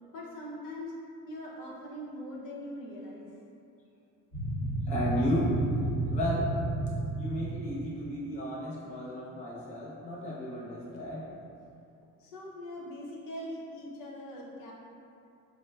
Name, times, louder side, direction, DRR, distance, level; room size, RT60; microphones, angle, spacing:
voice 1, 0.1-0.9 1.3-3.3 12.2-14.7, left 1 dB, 75° left, -4 dB, 0.7 m, -41 dB
sound 1, 4.3-7.7, right 2 dB, 45° left, 0.9 m, -31 dB
voice 2, 4.9-5.5 6.1-6.5 7.2-11.2, left 1 dB, 20° left, -7 dB, 0.5 m, -33 dB
4.3 x 2.1 x 2.2 m, 2.6 s
cardioid pair, 160°, 34 cm